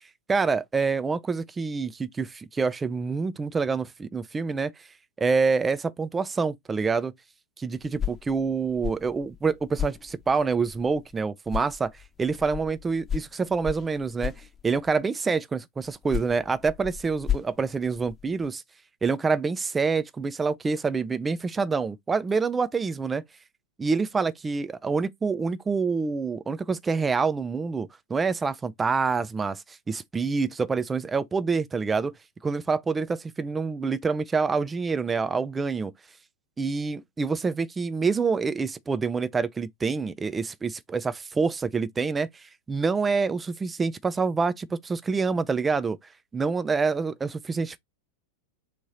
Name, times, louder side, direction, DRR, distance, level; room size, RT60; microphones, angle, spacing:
voice 1, 0.3-4.7 5.2-7.1 7.6-11.9 12.2-14.3 14.6-18.6 19.0-23.2 23.8-32.1 32.4-35.9 36.6-46.0 46.3-47.8, right 4 dB, 15° right, 0.4 m, -27 dB
sound 1, 7.8-11.2 11.5-15.0 15.8-18.5, left 9 dB, 15° left, 0.9 m, -35 dB
3.6 x 3.1 x 3.9 m
figure-of-eight pair, 90°, 0 cm